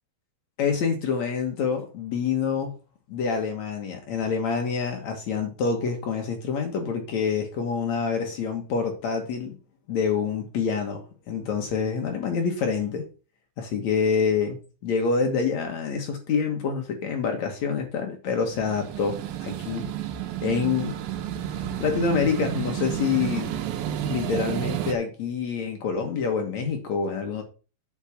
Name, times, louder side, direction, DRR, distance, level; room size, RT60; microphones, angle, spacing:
voice 1, 0.6-2.7 3.1-9.6 9.9-13.0 13.6-19.9 20.4-20.9 21.8-23.6 24.0-27.4, left 5 dB, 65° left, 1.8 m, -27 dB
sound 1, 18.4-24.9, right 11 dB, 80° right, 3.3 m, -31 dB
8.5 x 5.8 x 5.9 m
omnidirectional pair, 5.1 m